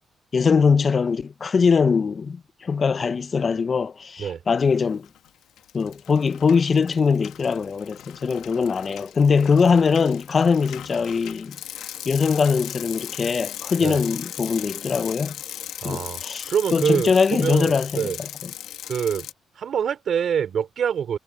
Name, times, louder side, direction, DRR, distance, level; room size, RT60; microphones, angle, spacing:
voice 1, 0.3-5.1 5.7-11.6 12.1-15.4 15.8-18.1, left 5 dB, 40° left, 0.5 m, -21 dB
Bicycle, 4.9-5.3 5.6-19.3, left 11 dB, 85° left, 1.0 m, -38 dB
voice 2, 15.8-16.2 16.5-18.2 18.9-19.3 19.6-21.2, right 8 dB, 60° right, 3.5 m, -25 dB
cardioid pair, 90°, 0 cm